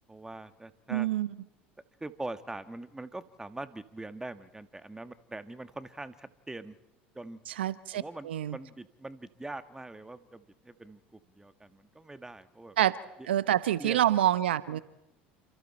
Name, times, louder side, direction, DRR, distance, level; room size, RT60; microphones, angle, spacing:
voice 1, 0.0-1.1 2.0-6.8 7.2-7.4 7.9-12.8 13.8-14.0, right 2 dB, 10° right, 11 dB, 1.8 m, -43 dB
voice 2, 0.9-1.3 7.5-8.6 12.8-13.0 13.3-14.8, right 12 dB, 85° right, 15 dB, 1.0 m, -27 dB
30.0 x 27.5 x 4.4 m, 0.91 s
hypercardioid pair, 80°, 6 cm